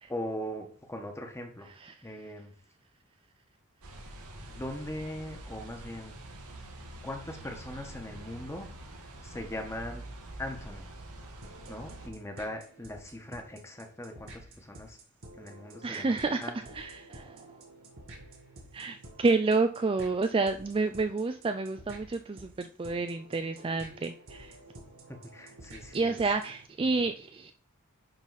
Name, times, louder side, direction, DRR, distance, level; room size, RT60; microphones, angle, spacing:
voice 1, 0.1-1.7 2.0-2.5 4.0-4.2 4.5-6.2 7.0-8.7 9.2-10.1 10.4-10.8 11.7-15.0 15.3-16.8 25.1-26.2 27.0-27.1, left 1 dB, 10° left, 3 dB, 1.4 m, -40 dB
sound 1, 3.8-12.1, right 1 dB, 85° right, 1.6 m, -46 dB
sound 2, 11.4-26.6, right 1 dB, 65° right, 2.2 m, -51 dB
voice 2, 15.8-17.5 18.7-24.6 25.9-27.5, right 3 dB, 25° right, 8 dB, 0.4 m, -29 dB
10.5 x 4.1 x 4.1 m, 0.44 s
head